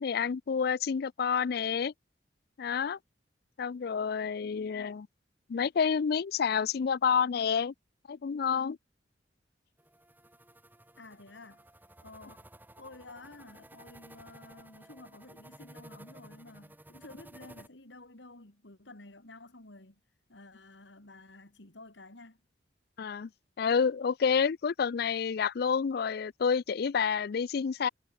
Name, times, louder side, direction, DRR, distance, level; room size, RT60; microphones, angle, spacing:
voice 1, 0.0-1.9 2.6-3.0 3.6-5.1 5.5-7.7 8.1-8.8 23.0-23.3 23.6-27.9, left 6 dB, 55° left, 0.4 m, -29 dB
sound 1, 9.8-17.7, right 1 dB, 10° right, 1.6 m, -54 dB
voice 2, 11.0-11.7 12.0-12.5 12.8-20.0 20.3-22.4, left 2 dB, 75° left, 3.0 m, -51 dB
head